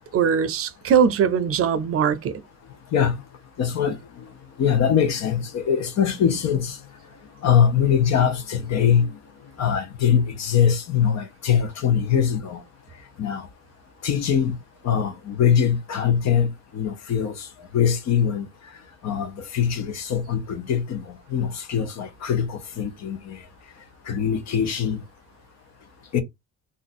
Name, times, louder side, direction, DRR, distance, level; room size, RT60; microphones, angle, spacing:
voice 1, 0.1-2.3, right 7 dB, 50° right, 0.5 m, -21 dB
voice 2, 3.6-4.3 4.6-6.8 7.4-9.1 9.6-12.6 13.2-13.5 14.0-14.6 14.8-17.5 17.7-18.5 19.0-23.4 24.1-25.0 26.1-26.2, left 8 dB, 65° left, 0.9 m, -22 dB
2.6 x 2.5 x 4.1 m
cardioid pair, 110°, 29 cm